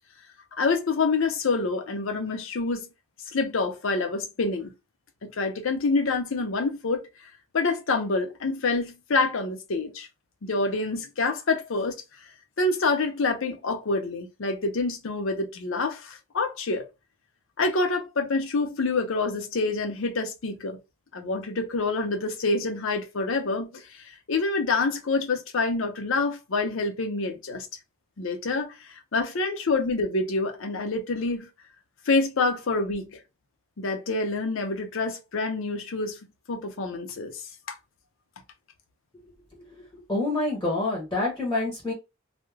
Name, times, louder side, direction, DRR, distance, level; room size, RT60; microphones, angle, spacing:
voice 1, 0.6-2.9 3.3-4.7 5.2-7.1 7.5-10.1 10.4-12.0 12.6-16.8 17.6-20.8 21.1-27.7 28.2-31.5 32.1-33.2 33.8-36.2 36.5-37.4, left 3 dB, 60° left, 0.6 m, -27 dB
voice 2, 40.1-41.9, left 2 dB, 15° left, 0.8 m, -26 dB
2.3 x 2.1 x 3.1 m
head